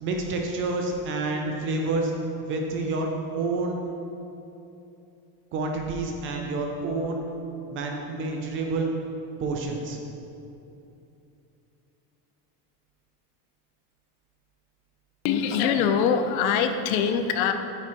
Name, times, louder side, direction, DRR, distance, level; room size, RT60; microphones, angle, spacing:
voice 1, 0.0-2.1 2.4-3.8 5.5-7.2 7.7-8.9 9.4-10.0, right 3 dB, 30° right, 2 dB, 0.3 m, -28 dB
voice 2, 15.2-17.5, left 7 dB, 85° left, 8 dB, 0.9 m, -23 dB
8.7 x 6.0 x 4.6 m, 2.8 s
cardioid pair, 170°, 50 cm